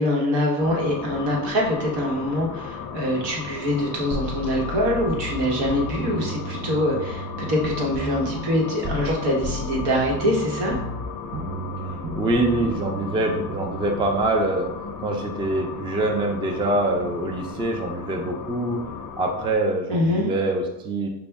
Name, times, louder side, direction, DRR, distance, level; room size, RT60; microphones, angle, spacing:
voice 1, 0.0-10.7 19.9-20.3, left 1 dB, 80° right, -2 dB, 1.3 m, -24 dB
sound 1, 0.6-19.5, left 6 dB, 50° left, 0.4 m, -36 dB
sound 2, 4.1-9.2 9.4-14.2, right 1 dB, 40° right, 0.7 m, -34 dB
voice 2, 12.2-14.7 15.0-18.8 19.2-21.1, right 2 dB, 15° right, 2 dB, 0.3 m, -24 dB
5.1 x 2.2 x 3.4 m, 0.89 s
cardioid pair, 135°, 41 cm